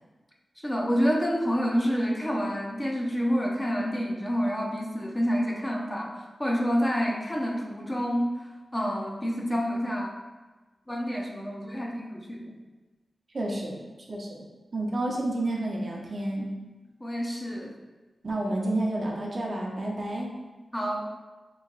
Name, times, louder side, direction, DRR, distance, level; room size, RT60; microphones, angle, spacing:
voice 1, 0.6-8.3 8.7-10.2 10.9-12.6 17.0-17.7 20.7-21.0, equal, 20° left, -1 dB, 0.7 m, -28 dB
voice 2, 13.3-13.8 14.1-14.4 14.7-16.5 18.2-20.3, right 1 dB, 55° right, -1 dB, 0.8 m, -30 dB
3.4 x 3.1 x 4.0 m, 1.2 s
cardioid pair, 50°, 0 cm